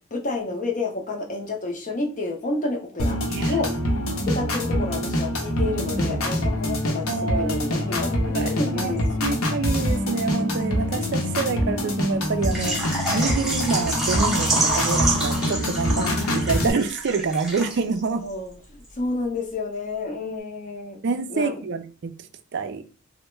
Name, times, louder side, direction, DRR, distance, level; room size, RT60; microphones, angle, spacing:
voice 1, 0.1-3.2 3.5-3.7 4.3-9.1 16.0-16.2 18.2-18.5 19.0-21.0 21.3-21.6, left 3 dB, 35° left, 0.6 m, -29 dB
sound 1, 3.0-16.7, equal, 80° left, 0.8 m, -25 dB
voice 2, 3.3-3.6 7.1-9.0 9.2-16.1 16.3-18.2 21.0-22.1 22.5-22.8, right 4 dB, 55° right, 0.4 m, -27 dB
Water / Liquid, 12.4-18.0 18.3-18.4 18.8-18.9, right 2 dB, ahead, 0.7 m, -27 dB
3.3 x 2.1 x 3.1 m
head